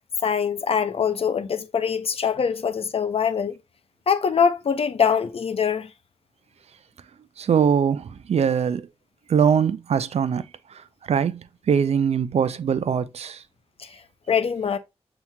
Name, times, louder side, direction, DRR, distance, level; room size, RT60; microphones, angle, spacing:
voice 1, 0.2-3.6 4.1-5.9 13.8-13.9 14.3-14.8, left 7 dB, 60° left, 0.5 m, -23 dB
voice 2, 7.4-8.9 9.3-10.4 10.7-13.4, right 7 dB, 70° right, 0.4 m, -22 dB
7.1 x 2.9 x 2.2 m
wide cardioid pair, 95°, 11 cm